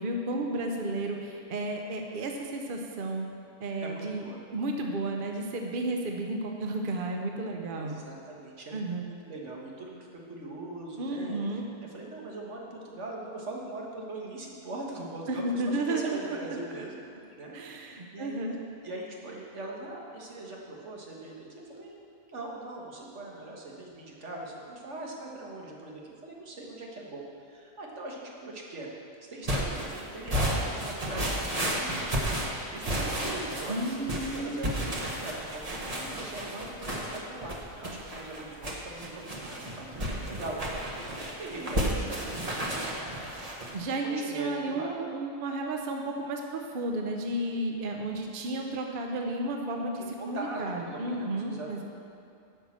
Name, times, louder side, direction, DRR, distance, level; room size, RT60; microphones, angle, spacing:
voice 1, 0.0-3.3 3.6-4.2 4.5-8.0 8.7-9.0 11.0-11.7 15.3-16.4 17.5-18.5 33.7-34.8 43.7-51.8, right 2 dB, 50° right, 2 dB, 0.9 m, -32 dB
voice 2, 3.8-4.4 7.7-8.8 9.0-11.4 11.8-17.0 17.3-18.6 18.8-22.0 22.3-28.9 29.3-43.1 44.0-44.9 50.2-51.8, right 2 dB, 80° right, -2 dB, 1.8 m, -41 dB
sound 1, 29.5-43.8, equal, 35° right, 1.3 m, -32 dB
10.5 x 5.6 x 7.3 m, 2.5 s
omnidirectional pair, 1.2 m